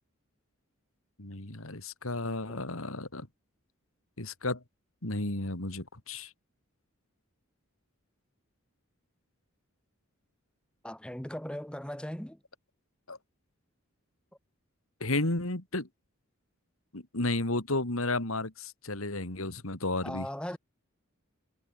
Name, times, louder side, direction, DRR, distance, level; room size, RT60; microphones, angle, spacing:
voice 1, 1.2-3.3 4.2-4.6 5.0-6.3 13.1-13.2 15.0-15.9 16.9-20.3, left 2 dB, 75° left, 3.2 m, -33 dB
voice 2, 10.8-12.4 20.0-20.6, equal, 5° left, 1.6 m, -38 dB
head